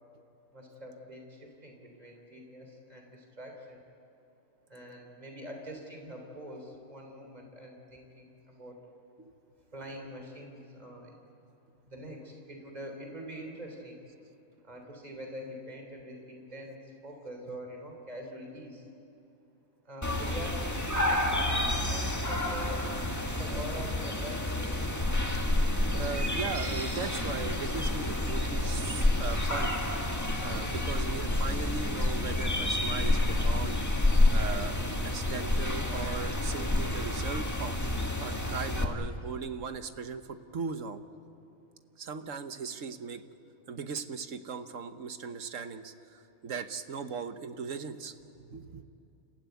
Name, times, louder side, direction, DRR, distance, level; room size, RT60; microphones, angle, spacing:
voice 1, 0.5-3.8 4.7-8.8 9.7-11.1 11.9-14.0 14.6-18.9 19.9-24.8, equal, 30° right, 2 dB, 3.5 m, -44 dB
sound 1, 20.0-38.8, left 1 dB, 10° left, 1.7 m, -29 dB
voice 2, 25.7-29.7 30.4-33.8 34.3-34.8 35.0-37.8 38.2-41.0 42.0-43.2 43.7-48.8, right 5 dB, 65° right, 9 dB, 1.4 m, -38 dB
29.5 x 15.0 x 9.3 m, 2.7 s
omnidirectional pair, 1.4 m